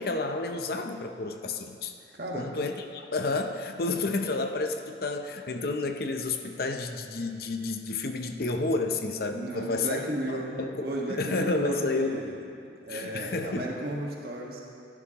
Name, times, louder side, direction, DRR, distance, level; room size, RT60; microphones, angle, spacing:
voice 1, 0.0-1.9 2.3-10.0 10.3-12.2 12.9-13.7, left 3 dB, 55° left, 6 dB, 0.7 m, -30 dB
voice 2, 2.1-2.5 9.3-12.3 12.8-14.6, right 1 dB, 60° right, -2 dB, 1.7 m, -34 dB
15.5 x 10.5 x 3.0 m, 2.4 s
head